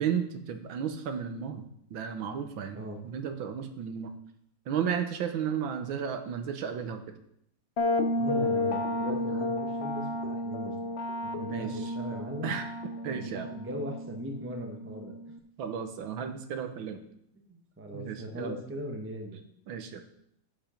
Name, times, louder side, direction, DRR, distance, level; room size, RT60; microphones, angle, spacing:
voice 1, 0.0-1.6 1.9-4.1 4.7-7.0 11.5-11.9 12.4-12.7 13.0-13.5 15.6-17.0 17.9-18.6 19.7-20.0, right 7 dB, 75° right, 7 dB, 1.7 m, -33 dB
sound 1, 7.8-15.4, left 1 dB, 70° left, 0.6 m, -32 dB
voice 2, 8.1-10.9 11.2-12.6 13.1-15.2 17.5-19.4, equal, 10° right, 3 dB, 0.8 m, -39 dB
12.0 x 5.6 x 5.1 m, 0.74 s
omnidirectional pair, 2.2 m